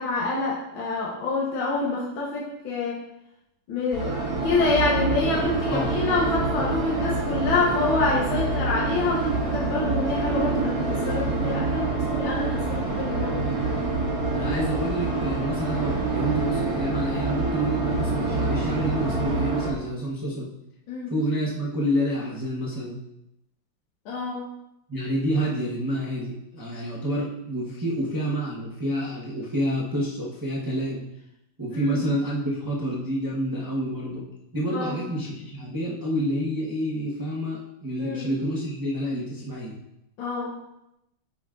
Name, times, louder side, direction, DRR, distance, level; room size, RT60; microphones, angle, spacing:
voice 1, 0.0-3.0 3.7-13.4 20.9-21.1 24.1-24.5 31.7-32.0 34.7-35.0 38.0-38.3 40.2-40.6, left 3 dB, 70° left, -4 dB, 1.9 m, -27 dB
sound 1, 3.9-19.7, right 3 dB, 45° right, 1.7 m, -26 dB
voice 2, 14.3-20.5 21.1-23.0 24.9-31.1 31.6-34.3 34.5-39.8, equal, 15° right, -5 dB, 0.6 m, -28 dB
9.6 x 6.0 x 2.5 m, 0.83 s
omnidirectional pair, 2.4 m